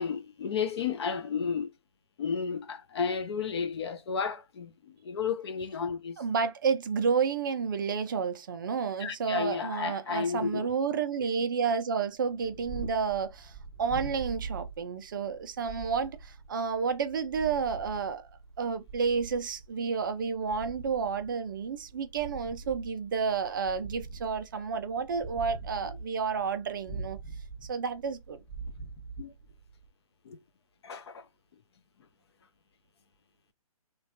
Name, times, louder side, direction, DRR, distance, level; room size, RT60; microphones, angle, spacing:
voice 1, 0.0-1.7 2.2-6.2 9.0-10.7 29.2-29.3 30.3-30.4 30.8-31.2, left 6 dB, 45° left, 0.4 m, -32 dB
voice 2, 6.2-18.3 18.6-27.2 27.7-28.4, right 6 dB, 35° right, 0.4 m, -30 dB
Purr, 12.2-29.9, right 4 dB, 5° left, 0.8 m, -43 dB
3.0 x 2.2 x 2.7 m
figure-of-eight pair, 140°, 19 cm